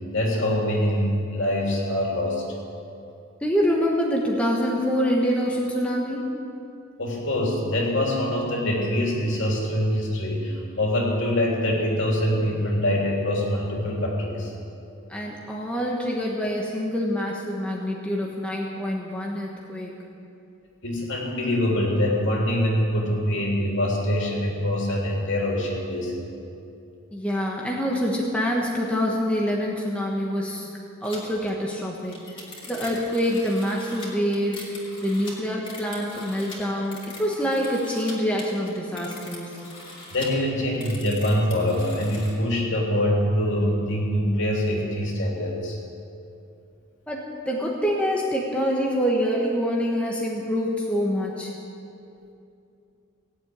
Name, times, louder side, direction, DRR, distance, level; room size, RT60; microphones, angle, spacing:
voice 1, 0.1-2.4 7.0-14.5 20.8-26.2 40.1-45.8, left 1 dB, 55° left, -2 dB, 3.2 m, -24 dB
voice 2, 3.4-6.3 15.1-19.9 27.1-30.7 31.0-34.7 35.0-39.6 47.1-51.5, equal, 5° left, -2 dB, 1.3 m, -26 dB
sound 1, 31.0-31.2 31.5-31.6 31.9-38.1 38.4-40.3 40.7-42.3, left 2 dB, 25° left, 3.0 m, -42 dB
18.0 x 8.1 x 9.4 m, 2.7 s
head